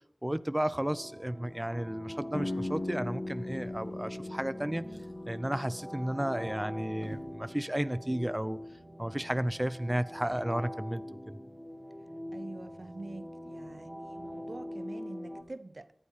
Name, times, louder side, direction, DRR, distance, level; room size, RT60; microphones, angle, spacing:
voice 1, 0.2-4.9 5.3-8.6 9.0-11.4, right 1 dB, 20° right, 0.6 m, -33 dB
sound 1, 0.7-15.4, equal, ahead, 3.2 m, -43 dB
sound 2, 2.3-8.1, left 2 dB, 90° left, 2.3 m, -40 dB
Drawer open or close, 3.5-4.5 4.8-7.4 8.3-8.4 8.8-8.9, right 2 dB, 90° right, 1.7 m, -55 dB
voice 2, 12.3-15.9, right 2 dB, 65° right, 0.9 m, -45 dB
18.5 x 12.0 x 5.1 m
wide cardioid pair, 45°, 0 cm